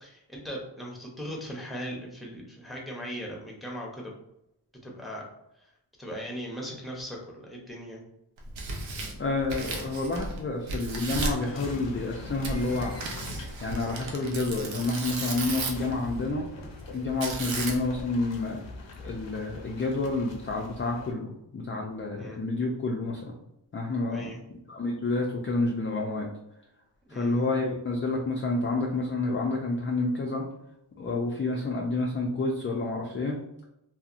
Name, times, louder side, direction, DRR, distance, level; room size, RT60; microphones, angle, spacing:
voice 1, 0.0-4.1 4.8-5.2 5.6-5.7 6.0-8.0 17.4-17.7 22.2-22.4 24.1-24.4 27.1-27.4 31.5-31.7, equal, ahead, -2 dB, 0.7 m, -39 dB
Tearing, 8.4-10.4 10.7-11.4 12.4-15.9 17.2-18.0, right 2 dB, 85° right, 0.6 m, -34 dB
voice 2, 9.2-12.9 13.6-16.4 16.9-18.6 19.0-23.3 23.7-24.3 24.7-26.3 27.1-30.5 31.0-33.4, left 2 dB, 30° left, -1 dB, 0.4 m, -29 dB
sound 1, 11.2-21.1, left 2 dB, 75° left, 0.6 m, -43 dB
2.7 x 2.1 x 2.4 m, 0.83 s
wide cardioid pair, 85°, 45 cm